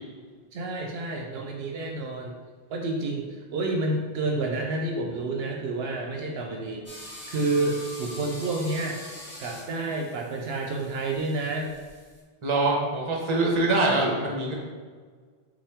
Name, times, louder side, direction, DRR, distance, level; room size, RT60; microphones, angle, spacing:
voice 1, 0.5-2.3 2.7-6.9 7.3-9.0 9.4-11.7, right 2 dB, 75° right, 1 dB, 0.8 m, -29 dB
sound 1, 6.9-12.2, left 1 dB, 15° left, 0.7 m, -44 dB
voice 2, 12.4-14.5, right 2 dB, 30° right, -2 dB, 0.8 m, -24 dB
5.5 x 2.4 x 3.4 m, 1.5 s
omnidirectional pair, 1.1 m